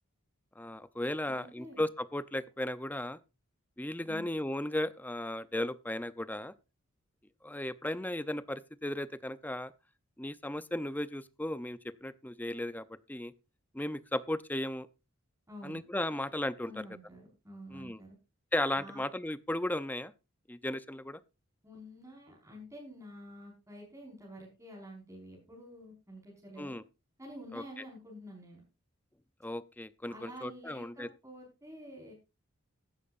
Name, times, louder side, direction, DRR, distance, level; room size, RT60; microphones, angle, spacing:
voice 1, 0.6-3.2 3.8-6.5 7.4-9.7 10.2-13.3 13.7-14.9 15.6-16.8 17.7-18.0 18.5-20.1 20.5-21.2 26.6-26.8 27.5-27.6 29.4-31.1, left 1 dB, 10° left, 0.6 m, -35 dB
voice 2, 1.2-1.8 4.0-4.3 15.5-15.8 16.6-18.2 18.7-19.0 21.6-26.8 27.2-28.6 30.1-32.1, equal, 15° right, 5.1 m, -49 dB
15.5 x 12.5 x 2.6 m
head